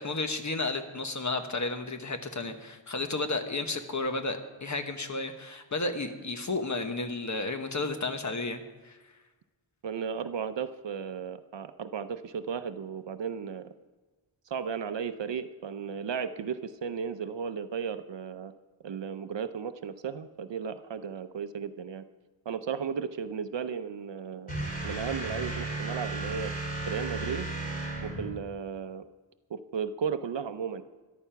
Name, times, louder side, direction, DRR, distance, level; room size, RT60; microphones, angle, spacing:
voice 1, 0.0-9.0, left 3 dB, 35° left, 7 dB, 1.2 m, -32 dB
voice 2, 9.8-13.7 14.5-18.5 18.8-22.0 22.5-24.5 24.8-26.5 26.9-27.5 28.0-29.0 29.5-30.8, right 7 dB, 60° right, 10 dB, 0.7 m, -35 dB
sound 1, 24.5-28.4, right 2 dB, 15° left, 3.7 m, -34 dB
14.0 x 11.0 x 5.8 m, 1.3 s
wide cardioid pair, 125°, 48 cm